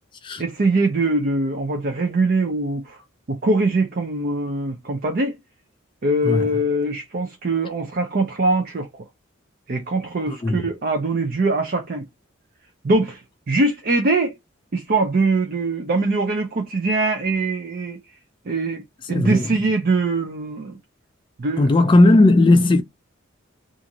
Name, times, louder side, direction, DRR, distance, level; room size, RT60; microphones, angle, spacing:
voice 1, 0.4-3.0 3.3-5.4 6.0-8.9 9.7-12.1 12.8-13.2 13.5-14.3 14.7-18.0 18.5-20.8 21.4-21.7, right 2 dB, 45° right, 0.5 m, -22 dB
voice 2, 10.3-10.7 19.1-19.4 21.6-22.8, left 2 dB, 25° left, 0.3 m, -16 dB
2.5 x 2.5 x 2.8 m
head